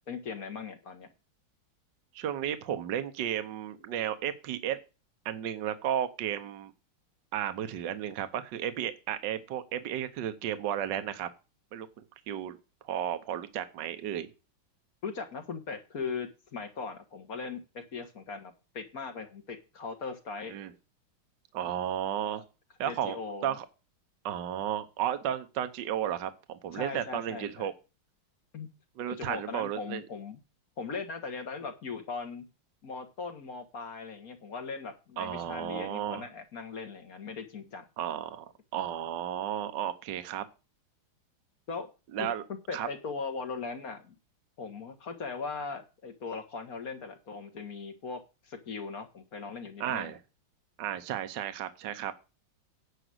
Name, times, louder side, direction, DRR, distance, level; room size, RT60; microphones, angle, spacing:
voice 1, 0.1-1.1 15.0-20.5 22.9-23.6 26.7-27.7 28.5-28.7 29.0-30.4 30.8-32.5 32.8-37.8 41.7-41.9 42.2-44.1 44.6-50.1, left 4 dB, 45° left, 6 dB, 1.9 m, -39 dB
voice 2, 2.1-4.8 5.2-6.7 7.3-11.3 11.7-11.9 12.3-12.6 12.9-14.3 20.5-20.7 21.5-22.4 22.8-23.2 23.4-23.6 24.2-27.7 29.0-30.0 35.2-36.2 38.0-38.5 38.7-40.4 42.1-42.4 42.7-42.9 49.8-50.2 50.8-52.1, right 10 dB, 65° right, 10 dB, 1.5 m, -33 dB
10.0 x 5.5 x 7.9 m, 0.31 s
omnidirectional pair, 2.2 m